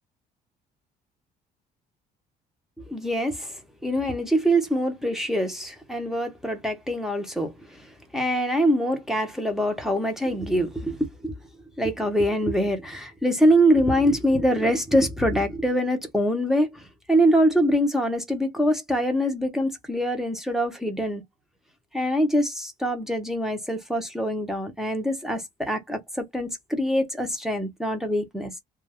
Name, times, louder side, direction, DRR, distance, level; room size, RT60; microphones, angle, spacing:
voice 1, 2.9-7.8 8.1-11.3 11.8-21.2 21.9-28.5, equal, ahead, 0.8 m, -24 dB
2.3 x 2.2 x 3.4 m
cardioid pair, 110°, 17 cm